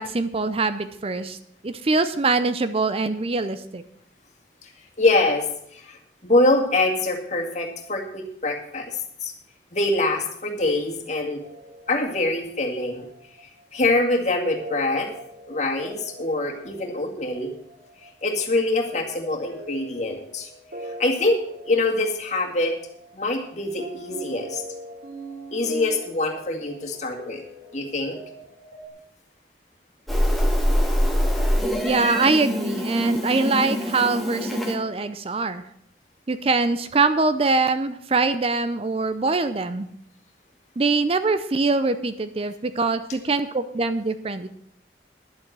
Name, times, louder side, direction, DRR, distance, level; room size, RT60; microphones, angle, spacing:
voice 1, 0.0-1.4 1.6-3.8 31.8-35.6 36.3-39.9 40.8-44.5, right 3 dB, 35° right, 12 dB, 0.5 m, -23 dB
voice 2, 5.0-9.3 9.7-11.4 11.9-13.1 13.4-15.1 15.5-17.5 18.2-20.5 20.8-21.4 21.7-22.7 23.1-24.6 25.5-27.4 27.7-28.2, left 2 dB, 40° left, 2 dB, 2.1 m, -24 dB
sound 1, 11.4-28.9, right 1 dB, 65° right, 3.2 m, -42 dB
Meow, 30.1-34.8, equal, ahead, 1.6 m, -24 dB
11.0 x 7.8 x 7.5 m, 0.70 s
head